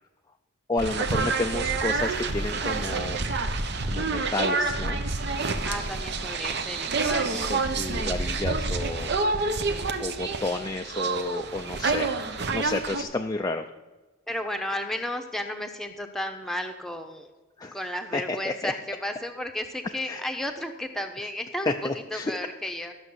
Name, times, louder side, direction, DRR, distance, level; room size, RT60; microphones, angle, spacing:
voice 1, 0.7-3.2 3.9-5.0 7.5-9.1 10.0-12.1 12.5-13.6 17.6-17.8 18.1-18.7 20.1-20.2 21.7-22.4, left 2 dB, 15° left, 4 dB, 0.4 m, -31 dB
sound 1, 0.8-13.0, right 3 dB, 50° right, 0.9 m, -28 dB
voice 2, 5.6-7.5 14.3-17.3 17.7-22.9, left 1 dB, ahead, 5 dB, 0.9 m, -33 dB
13.5 x 6.5 x 7.9 m, 1.2 s
head